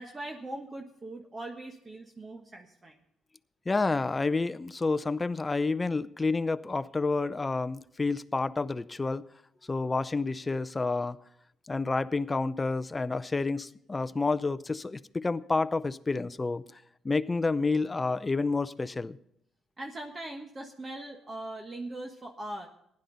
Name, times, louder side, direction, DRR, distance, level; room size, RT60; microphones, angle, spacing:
voice 1, 0.0-3.0 19.8-22.7, right 1 dB, 30° right, 1.3 m, -40 dB
voice 2, 3.7-9.2 9.7-11.2 11.7-19.2, left 3 dB, 25° left, 0.6 m, -29 dB
15.5 x 11.0 x 3.9 m
cardioid pair, 85°, 0 cm